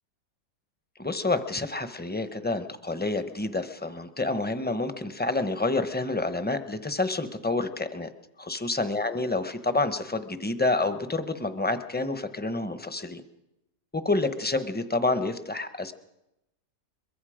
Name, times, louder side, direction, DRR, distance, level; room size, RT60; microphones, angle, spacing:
voice 1, 1.0-8.1 8.4-13.2 13.9-15.9, left 2 dB, 10° left, 10 dB, 0.5 m, -28 dB
23.0 x 22.5 x 5.0 m, 0.88 s
omnidirectional pair, 1.9 m